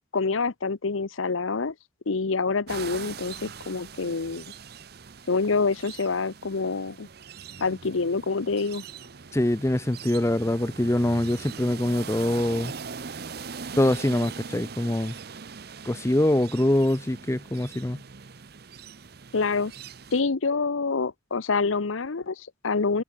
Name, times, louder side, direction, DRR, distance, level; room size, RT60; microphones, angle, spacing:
voice 1, 0.1-1.7 2.1-4.4 5.3-7.1 7.6-8.8 19.3-19.7 20.1-23.0, left 4 dB, 90° left, 0.8 m, -26 dB
sound 1, 2.7-20.2, right 5 dB, 50° right, 0.8 m, -41 dB
voice 2, 9.3-12.7 13.8-15.1 15.8-18.0, left 1 dB, 15° left, 0.6 m, -24 dB
head